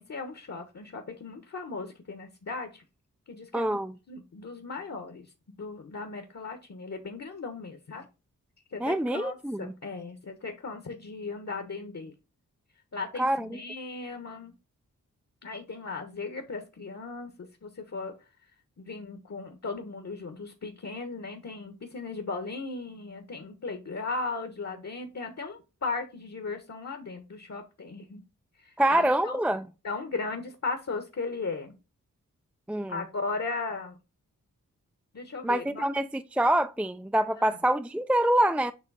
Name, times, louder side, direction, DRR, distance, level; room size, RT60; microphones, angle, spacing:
voice 1, 0.0-2.8 3.3-3.8 4.1-8.0 8.7-12.1 12.9-14.5 15.4-18.1 18.8-28.2 28.6-29.4 29.8-31.7 32.9-34.0 35.1-35.9 37.4-37.6, left 4 dB, 50° left, 1.3 m, -37 dB
voice 2, 3.5-4.0 8.8-9.8 13.2-13.6 28.8-29.7 32.7-33.0 35.4-38.7, right 1 dB, 5° right, 0.4 m, -26 dB
7.5 x 3.1 x 4.1 m
cardioid pair, 50°, 34 cm